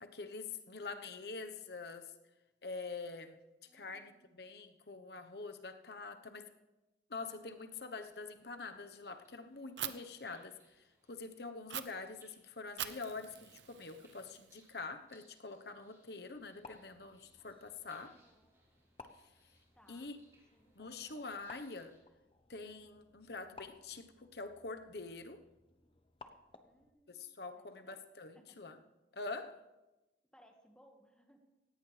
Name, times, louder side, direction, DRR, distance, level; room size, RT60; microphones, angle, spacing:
voice 1, 0.0-2.1 2.6-3.4 3.7-6.5 7.1-18.1 19.9-20.2 20.7-21.9 22.5-25.4 27.1-28.8 29.1-29.7, left 3 dB, 65° left, 7 dB, 1.1 m, -45 dB
voice 2, 3.6-4.3 18.0-18.5 19.7-20.1 20.5-21.2 26.6-28.0 28.3-28.6 30.3-31.4, equal, 5° left, 2 dB, 1.7 m, -66 dB
sound 1, 7.1-22.0, right 2 dB, 20° right, 6.0 m, -72 dB
Fire, 9.8-9.9 11.7-11.8 12.8-14.7, right 11 dB, 85° right, 0.8 m, -43 dB
sound 2, 16.3-26.9, left 3 dB, 30° left, 0.9 m, -60 dB
17.5 x 17.0 x 3.4 m, 1.0 s
head